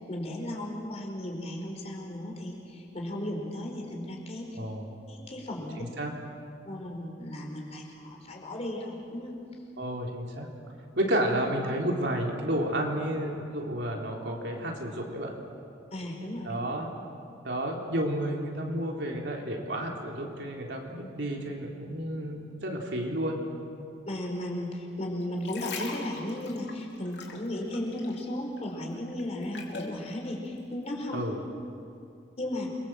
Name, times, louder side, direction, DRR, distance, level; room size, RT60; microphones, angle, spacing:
voice 1, 0.1-4.6 5.1-5.8 6.7-9.3 15.9-16.5 24.1-31.2 32.4-32.7, left 1 dB, 35° left, 0 dB, 4.7 m, -35 dB
voice 2, 4.5-4.9 5.8-6.1 9.8-10.5 11.0-15.3 16.4-16.9 17.4-23.4 31.1-31.4, right 1 dB, 70° right, 0 dB, 3.8 m, -31 dB
sound 1, 25.2-28.3 28.6-30.0 30.6-30.7, left 4 dB, 70° left, 3.7 m, -41 dB
29.0 x 23.0 x 7.7 m, 2.5 s
head